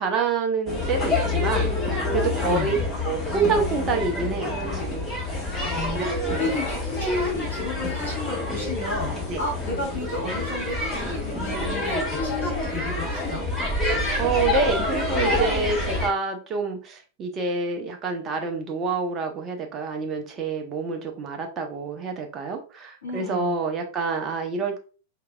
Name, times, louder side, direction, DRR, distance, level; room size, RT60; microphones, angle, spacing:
voice 1, 0.0-2.8 3.0-5.0 5.9-6.5 9.3-9.4 13.9-24.8, right 4 dB, 25° right, 3 dB, 0.8 m, -27 dB
sound 1, 0.7-16.1, left 2 dB, 20° left, 1.4 m, -27 dB
voice 2, 2.4-2.7 5.6-9.1 9.4-13.5 23.0-23.6, left 2 dB, 70° left, -4 dB, 1.9 m, -32 dB
4.6 x 2.9 x 2.3 m, 0.37 s
figure-of-eight pair, 90°, 0 cm